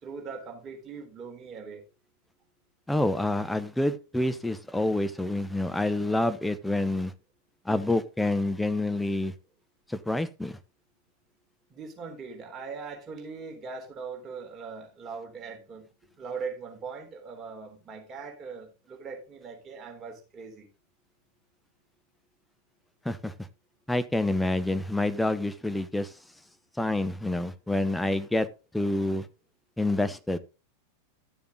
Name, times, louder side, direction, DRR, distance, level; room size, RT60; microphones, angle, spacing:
voice 1, 0.0-1.8 11.7-15.9 16.2-20.7, right 5 dB, 25° right, 3.7 m, -40 dB
voice 2, 2.9-7.1 7.7-9.3 9.9-10.5 23.0-23.3 23.9-26.1 26.8-28.5 28.7-29.2 29.8-30.4, left 1 dB, 5° left, 0.9 m, -27 dB
12.5 x 7.0 x 3.8 m
figure-of-eight pair, 90°, 0 cm